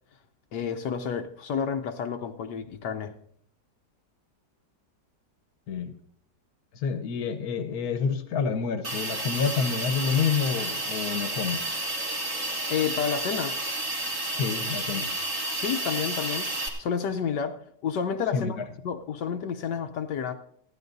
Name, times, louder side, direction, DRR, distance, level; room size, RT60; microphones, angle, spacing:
voice 1, 0.5-3.1 12.7-13.5 15.6-16.5 16.8-18.6 18.8-20.3, left 7 dB, 80° left, 5 dB, 1.4 m, -30 dB
voice 2, 6.7-11.6 14.3-15.1 18.3-18.7, left 6 dB, 60° left, 8 dB, 1.5 m, -28 dB
Hiss, 8.8-16.7, right 1 dB, 45° right, 2.5 m, -31 dB
29.0 x 10.5 x 2.6 m, 0.64 s
omnidirectional pair, 1.9 m